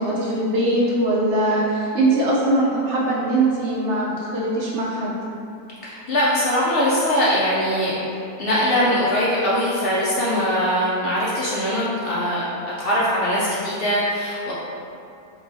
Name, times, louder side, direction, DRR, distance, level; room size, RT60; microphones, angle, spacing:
voice 1, 0.0-5.2, right 2 dB, 60° right, -5 dB, 0.8 m, -21 dB
voice 2, 5.8-12.4 12.8-14.5, equal, 70° left, -7 dB, 0.5 m, -21 dB
4.8 x 2.2 x 2.6 m, 2.7 s
omnidirectional pair, 1.6 m